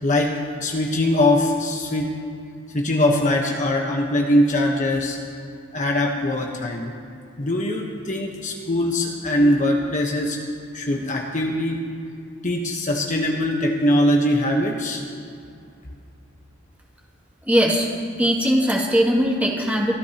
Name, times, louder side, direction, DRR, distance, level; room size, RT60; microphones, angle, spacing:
voice 1, 0.0-2.1 2.7-5.2 5.7-6.9 7.4-10.4 10.7-11.8 12.4-15.0, left 1 dB, 40° left, 0 dB, 1.1 m, -21 dB
voice 2, 17.5-17.9 18.2-20.0, equal, 10° right, -3 dB, 2.3 m, -19 dB
23.0 x 14.0 x 2.9 m, 2.5 s
head